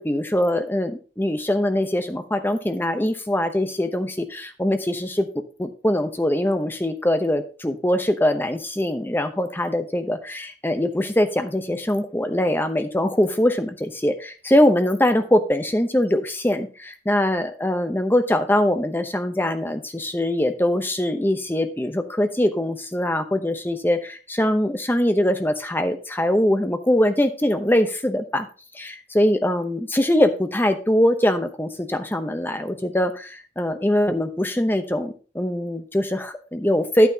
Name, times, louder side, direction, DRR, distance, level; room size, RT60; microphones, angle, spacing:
voice 1, 0.0-5.3 5.6-28.5 28.7-37.1, left 1 dB, 10° left, 8 dB, 0.8 m, -22 dB
9.9 x 9.0 x 2.9 m, 0.36 s
head